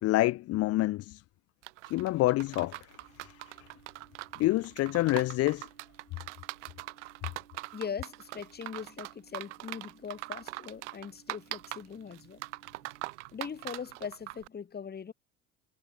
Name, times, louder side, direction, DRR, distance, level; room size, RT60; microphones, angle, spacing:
voice 1, 0.0-1.2 1.9-3.5 4.4-5.7, left 17 dB, 40° left, 0.6 m, -28 dB
sound 1, 1.6-14.5, right 20 dB, 70° right, 0.7 m, -42 dB
sound 2, 3.0-13.1, right 6 dB, 90° right, 4.5 m, -62 dB
voice 2, 7.7-12.4 13.3-15.1, left 6 dB, 25° left, 1.9 m, -41 dB
figure-of-eight pair, 65°, 37 cm